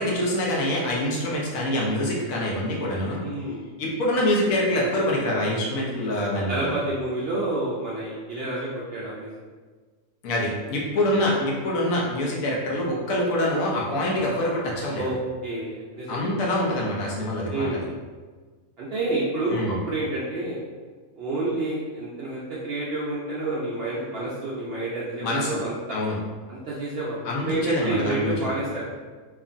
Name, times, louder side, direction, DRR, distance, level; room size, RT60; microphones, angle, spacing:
voice 1, 0.0-3.2 3.8-6.7 10.2-15.0 16.1-17.7 19.5-19.8 25.2-25.6 25.9-26.2 27.2-28.4, left 1 dB, 75° left, -3 dB, 1.1 m, -25 dB
voice 2, 3.2-3.6 6.0-6.1 6.5-9.3 14.9-16.3 17.5-17.9 18.8-20.6 21.2-25.7 26.5-28.9, right 2 dB, 65° right, -7 dB, 0.6 m, -29 dB
2.9 x 2.5 x 2.4 m, 1.4 s
omnidirectional pair, 1.5 m